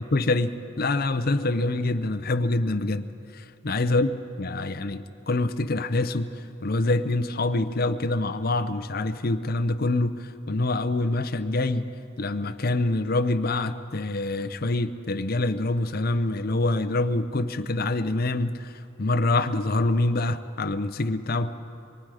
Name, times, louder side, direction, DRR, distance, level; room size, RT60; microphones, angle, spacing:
voice 1, 0.1-3.1 3.3-4.1 4.4-6.3 6.6-11.9 12.2-18.7 19.0-21.5, left 2 dB, 45° left, 8 dB, 0.7 m, -25 dB
25.0 x 23.0 x 4.9 m, 2.8 s
head